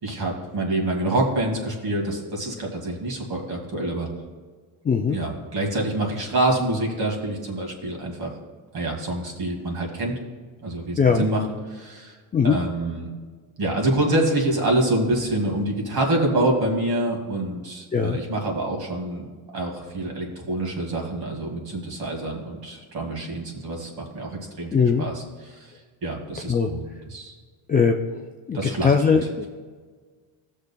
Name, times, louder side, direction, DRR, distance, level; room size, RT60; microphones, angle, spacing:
voice 1, 0.0-4.1 5.1-8.3 8.7-10.1 10.6-12.2 12.4-13.1 13.6-19.2 19.5-25.7 26.0-27.3 28.5-29.2, right 1 dB, 45° right, 0 dB, 2.3 m, -26 dB
voice 2, 4.8-5.2 11.0-11.3 12.3-12.6 17.9-18.2 24.7-25.1 26.5-26.7 27.7-28.0 28.5-29.5, left 6 dB, 20° left, 3 dB, 0.3 m, -20 dB
15.5 x 6.5 x 2.3 m, 1.5 s
cardioid pair, 105°, 50 cm